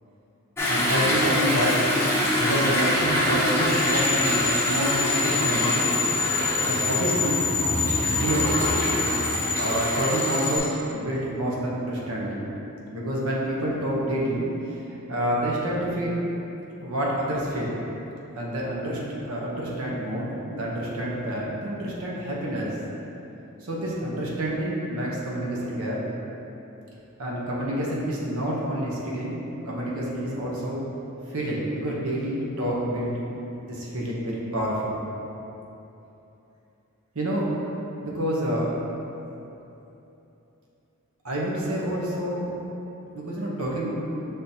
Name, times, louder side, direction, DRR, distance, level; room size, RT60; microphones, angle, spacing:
Toilet flush / Drip / Trickle dribble, 0.6-10.7, left 1 dB, 10° left, 0.7 m, -25 dB
voice 1, 0.7-1.8 2.4-5.9 6.6-7.4 8.0-8.5 9.6-12.5 12.9-16.2 16.8-17.8 18.4-19.0 19.2-22.7 23.6-26.0 27.2-29.4 29.7-30.8 31.3-33.2 33.6-35.0 37.1-37.4 38.0-38.7 41.2-42.5 43.1-43.9, right 1 dB, 70° right, -4 dB, 0.8 m, -28 dB
sound 1, 3.7-10.6, left 4 dB, 45° left, 0.7 m, -27 dB
5.7 x 3.5 x 2.7 m, 3.0 s
head